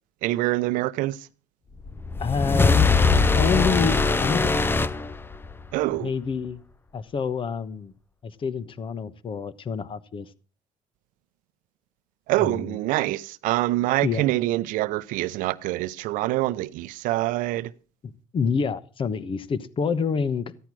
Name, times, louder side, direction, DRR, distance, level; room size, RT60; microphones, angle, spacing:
voice 1, 0.2-1.2 5.7-6.1 12.3-17.7, right 17 dB, 85° right, 0.7 m, -25 dB
sound 1, 1.9-5.7, left 4 dB, 15° left, 0.6 m, -21 dB
voice 2, 2.2-2.9 3.3-4.6 6.0-6.6 6.9-7.9 8.2-10.3 12.4-12.8 14.0-14.3 18.3-20.5, left 5 dB, 40° left, 1.1 m, -27 dB
15.0 x 10.0 x 6.2 m
cardioid pair, 110°, 13 cm